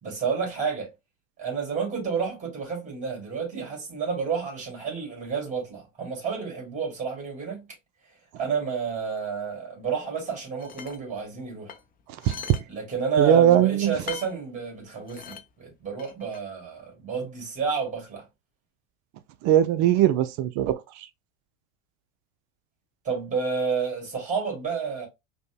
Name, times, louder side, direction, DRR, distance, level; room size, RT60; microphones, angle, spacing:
voice 1, 0.0-0.9 1.4-7.6 8.4-11.7 12.7-18.2 23.0-25.1, right 5 dB, 20° right, 2.2 m, -30 dB
sound 1, 10.6-11.0 11.7-12.7 13.0-13.1 14.1-14.4 15.1-15.5 16.0-16.4, left 7 dB, 25° left, 0.5 m, -40 dB
voice 2, 13.2-14.0 19.4-21.1, right 11 dB, 50° right, 0.5 m, -20 dB
5.1 x 2.1 x 2.3 m
hypercardioid pair, 95°, 37 cm